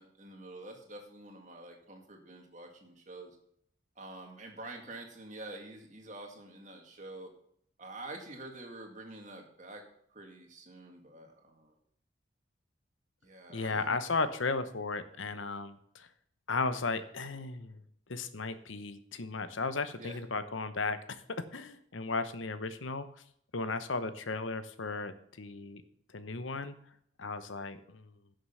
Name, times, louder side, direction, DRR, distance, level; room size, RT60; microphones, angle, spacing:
voice 1, 0.0-3.4 4.0-7.3 7.8-9.8 10.1-11.7 13.2-14.0 20.0-20.2, right 2 dB, 40° right, 3 dB, 2.0 m, -47 dB
voice 2, 13.5-16.1 16.5-17.8 18.1-21.2 21.5-23.2 23.5-25.8 26.1-26.8 27.2-28.1, left 3 dB, 90° left, 12 dB, 0.9 m, -35 dB
11.5 x 6.6 x 5.6 m, 0.68 s
head